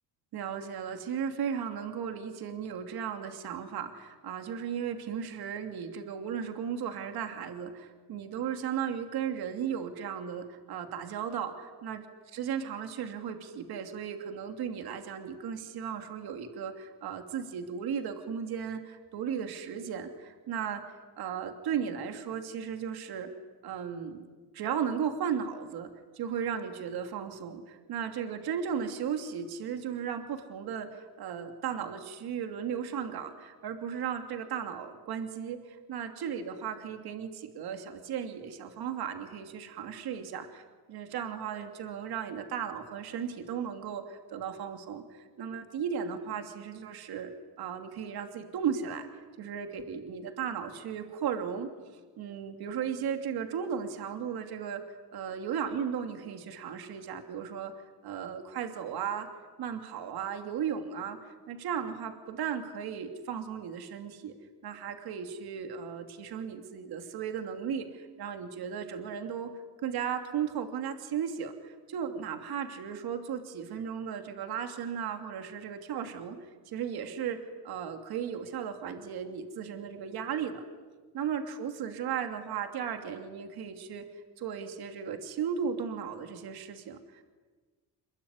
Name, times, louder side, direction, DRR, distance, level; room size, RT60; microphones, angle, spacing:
voice 1, 0.3-12.0 12.3-20.8 21.2-23.3 23.6-24.2 24.5-40.6 40.9-49.1 49.4-51.7 52.2-54.8 55.1-57.7 58.0-59.3 59.6-64.3 64.6-69.5 69.8-80.6 81.1-84.0 84.4-87.2, right 7 dB, 65° right, 6 dB, 2.9 m, -36 dB
28.0 x 22.0 x 9.7 m, 1.4 s
cardioid pair, 170°, 40 cm